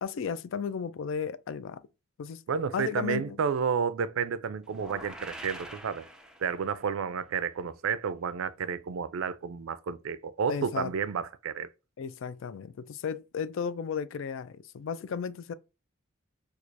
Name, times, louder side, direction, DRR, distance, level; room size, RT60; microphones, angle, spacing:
voice 1, 0.0-1.8 2.2-2.4 2.7-3.4 10.5-10.9 12.0-15.5, left 6 dB, 65° left, 0.3 m, -34 dB
voice 2, 2.5-6.1 6.4-11.7, right 6 dB, 70° right, 0.4 m, -31 dB
sound 1, 4.7-6.9, right 1 dB, 5° right, 0.4 m, -45 dB
4.5 x 2.4 x 2.5 m
head